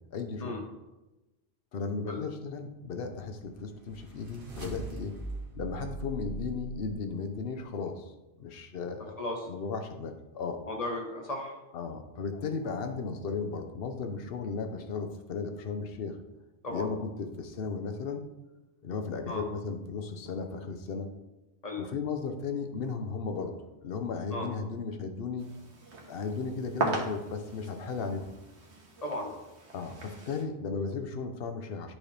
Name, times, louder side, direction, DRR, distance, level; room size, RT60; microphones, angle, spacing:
voice 1, 0.1-0.6 1.7-5.2 5.5-8.1 8.4-9.1 9.5-10.6 11.7-16.2 16.7-18.2 18.8-21.1 21.8-23.5 23.8-25.5 26.1-28.3 29.7-32.0, left 5 dB, 55° left, 6 dB, 0.9 m, -35 dB
sound 1, 3.1-7.3, right 3 dB, 50° right, 1.4 m, -41 dB
voice 2, 10.6-11.6 16.6-16.9 19.3-19.4 21.6-21.8 24.3-24.5 29.0-29.3, left 1 dB, 35° left, 0 dB, 1.4 m, -35 dB
sound 2, 25.4-30.4, right 3 dB, 65° right, 1.5 m, -38 dB
11.5 x 4.2 x 3.3 m, 1.0 s
omnidirectional pair, 1.2 m